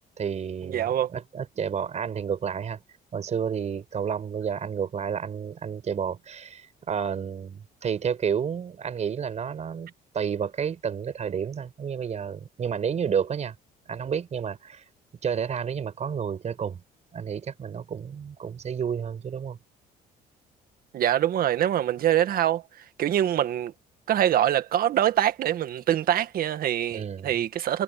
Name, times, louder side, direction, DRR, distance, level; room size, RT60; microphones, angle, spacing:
voice 1, 0.2-2.8 3.1-13.5 13.9-14.8 15.2-16.8 17.1-19.6 26.9-27.4, right 7 dB, 40° right, 5.8 m, -30 dB
voice 2, 0.7-1.1 20.9-22.6 23.0-23.7 24.1-27.8, right 11 dB, 60° right, 1.8 m, -24 dB
cardioid pair, 110°, 17 cm